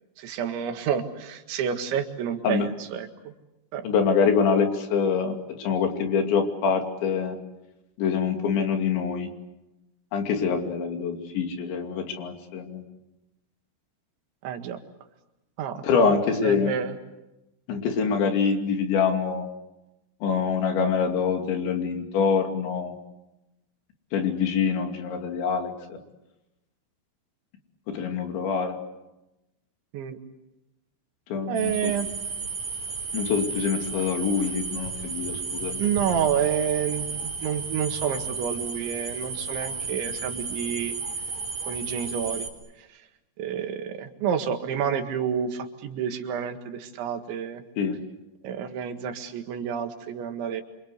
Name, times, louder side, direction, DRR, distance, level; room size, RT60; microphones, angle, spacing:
voice 1, 0.2-3.3 3.7-3.9 14.4-14.8 15.6-15.8 16.4-17.0 29.9-30.2 31.5-32.1 35.8-41.0 41.7-42.5 42.8-43.0 43.4-47.6 48.4-50.6, right 8 dB, 90° right, 6 dB, 4.2 m, -29 dB
voice 2, 3.8-7.4 8.0-9.3 10.1-12.8 15.8-16.7 17.7-19.4 20.2-22.9 24.1-26.0 27.9-28.8 31.3-31.9 33.1-35.8 47.8-48.0, left 6 dB, 80° left, 4 dB, 5.0 m, -25 dB
sound 1, 31.6-42.5, right 4 dB, 45° right, 4.6 m, -33 dB
27.0 x 26.5 x 8.2 m, 0.96 s
omnidirectional pair, 5.1 m